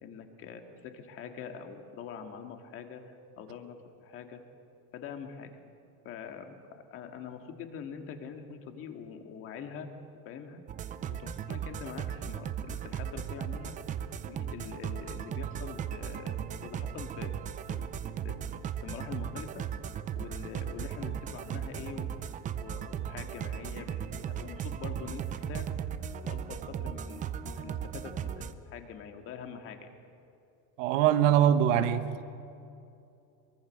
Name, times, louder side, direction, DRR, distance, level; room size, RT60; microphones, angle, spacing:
voice 1, 0.0-4.4 4.9-5.5 6.0-9.9 10.3-10.6 11.0-13.8 14.2-17.4 17.7-18.5 18.8-19.6 20.2-22.1 22.5-25.7 26.2-29.9, left 7 dB, 35° left, 5 dB, 2.0 m, -44 dB
sound 1, 10.7-28.5, right 9 dB, 20° right, 0.6 m, -37 dB
voice 2, 30.8-32.2, right 10 dB, 80° right, 9 dB, 1.4 m, -23 dB
23.5 x 23.0 x 6.5 m, 2.6 s
cardioid pair, 175°, 36 cm